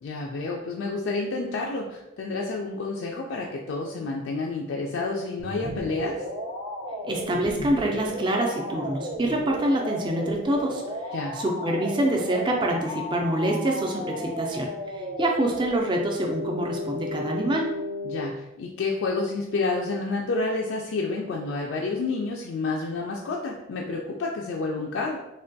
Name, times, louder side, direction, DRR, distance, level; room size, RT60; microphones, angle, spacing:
voice 1, 0.0-6.2 11.1-11.4 18.0-25.2, left 3 dB, 90° left, -1 dB, 0.3 m, -29 dB
sound 1, 5.4-18.2, left 1 dB, 80° right, 0.7 m, -34 dB
voice 2, 7.1-10.8 11.3-17.7, right 1 dB, 25° right, 1 dB, 0.4 m, -26 dB
3.2 x 2.2 x 2.6 m, 0.94 s
head